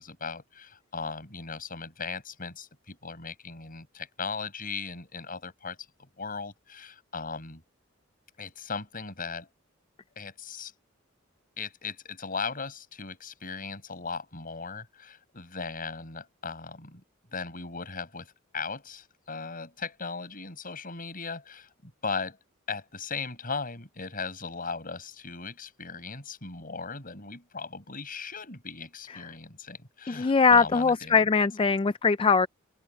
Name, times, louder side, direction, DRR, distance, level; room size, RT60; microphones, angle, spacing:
voice 1, 0.0-5.8 6.2-7.6 8.4-9.5 10.2-10.7 11.6-17.0 17.3-22.4 22.7-31.2, left 4 dB, 45° left, 7.4 m, -38 dB
voice 2, 30.1-32.5, left 5 dB, 25° left, 0.4 m, -22 dB
head